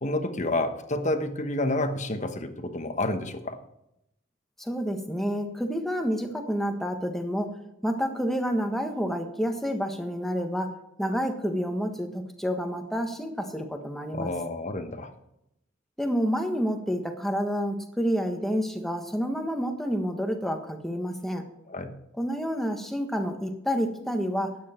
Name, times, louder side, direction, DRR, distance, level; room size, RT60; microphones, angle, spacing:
voice 1, 0.0-3.6 14.1-15.1 21.7-21.9, left 2 dB, 35° left, 8 dB, 1.1 m, -29 dB
voice 2, 4.6-7.5 7.8-14.3 16.0-21.4 22.2-24.6, equal, ahead, 4 dB, 1.4 m, -29 dB
13.0 x 9.6 x 4.4 m, 0.82 s
head